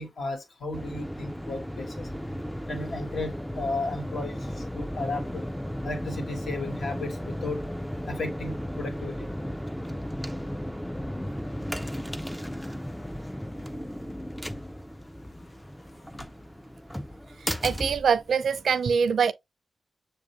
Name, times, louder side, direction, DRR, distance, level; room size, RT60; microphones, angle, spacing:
voice 1, 0.0-2.1 2.7-4.4 4.7-5.4 5.8-7.6 8.1-9.3, left 2 dB, 65° left, 1.2 m, -34 dB
sound 1, 0.7-18.8, equal, 5° left, 0.3 m, -35 dB
voice 2, 17.4-19.3, right 6 dB, 80° right, 0.4 m, -24 dB
6.7 x 2.5 x 3.0 m
wide cardioid pair, 145°, 0 cm